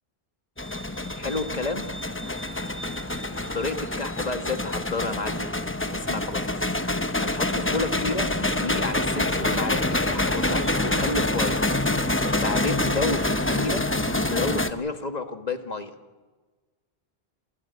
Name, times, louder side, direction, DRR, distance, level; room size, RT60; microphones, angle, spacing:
sound 1, 0.6-14.7, left 1 dB, 15° left, 0.8 m, -26 dB
voice 1, 1.2-1.9 3.5-5.6 5.9-6.5 7.2-11.7 12.4-13.9 14.3-15.9, left 3 dB, 40° left, 7 dB, 1.7 m, -31 dB
sound 2, 7.8-13.7, right 1 dB, 10° right, 1.3 m, -43 dB
28.0 x 13.5 x 9.6 m, 1.3 s
omnidirectional pair, 1.1 m